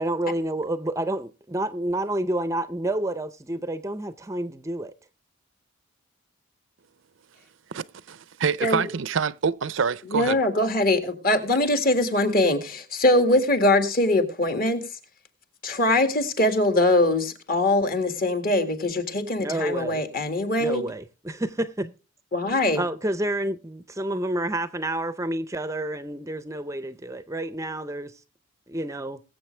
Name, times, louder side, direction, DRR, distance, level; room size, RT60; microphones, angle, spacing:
voice 1, 0.0-4.9 19.4-20.0 20.6-21.9 22.7-28.2 28.7-29.2, right 1 dB, 15° right, 0.5 m, -29 dB
voice 2, 7.7-10.4, right 6 dB, 70° right, 0.5 m, -26 dB
voice 3, 10.1-15.0 15.6-20.8 22.3-22.8, left 1 dB, 45° left, 1.9 m, -22 dB
21.5 x 7.7 x 3.2 m
head